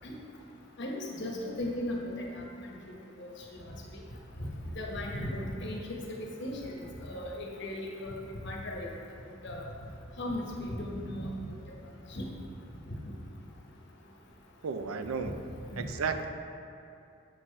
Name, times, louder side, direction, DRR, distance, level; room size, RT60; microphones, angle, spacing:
voice 1, 0.8-2.4 3.2-3.3 4.4-4.5 4.7-8.9 9.4-9.7 10.2-11.5 12.1-12.2 12.9-13.0 15.7-15.8, left 1 dB, 55° left, -2 dB, 1.0 m, -36 dB
voice 2, 14.6-15.4 15.8-16.3, right 5 dB, 90° right, 8 dB, 0.4 m, -33 dB
7.2 x 6.5 x 3.2 m, 2.7 s
head